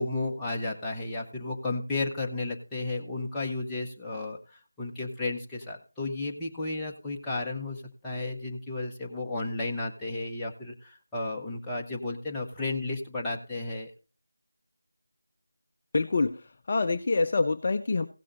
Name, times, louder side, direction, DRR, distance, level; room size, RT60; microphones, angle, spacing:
voice 1, 0.0-13.9, left 2 dB, 5° left, -5 dB, 1.1 m, -33 dB
voice 2, 15.9-18.1, left 3 dB, 35° left, 8 dB, 0.5 m, -26 dB
16.5 x 6.3 x 4.0 m, 0.34 s
figure-of-eight pair, 165°, 0 cm